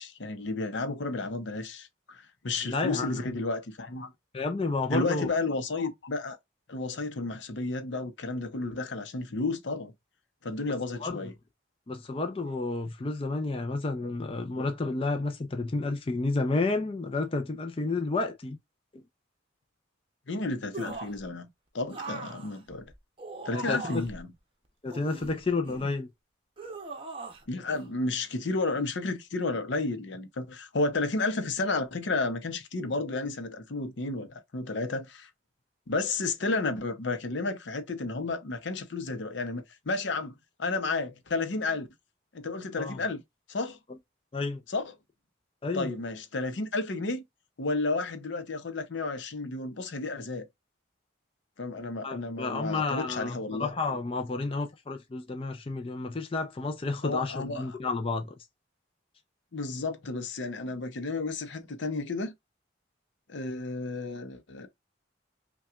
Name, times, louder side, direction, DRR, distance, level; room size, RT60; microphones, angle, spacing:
voice 1, 0.0-4.1 4.9-6.4 6.7-9.9 10.4-11.3 20.3-21.5 21.7-22.8 23.4-24.3 27.5-35.3 35.9-41.9 42.3-43.2 43.5-43.8 44.7-44.9 45.7-47.2 47.6-50.5 51.6-53.7 57.0-57.7 59.5-62.3 63.3-64.7, left 3 dB, 70° left, 0.7 m, -32 dB
voice 2, 2.6-3.2 4.3-5.3 11.0-11.2 11.9-18.6 18.9-19.0 23.5-24.1 24.8-26.1 42.8-43.0 44.3-44.6 45.6-45.9 52.0-58.3, left 3 dB, 30° left, 0.4 m, -31 dB
sound 1, 20.7-21.2 21.9-24.2 24.9-26.0 26.6-27.4 27.7-27.9, right 2 dB, 30° right, 0.8 m, -40 dB
5.5 x 2.3 x 2.4 m
head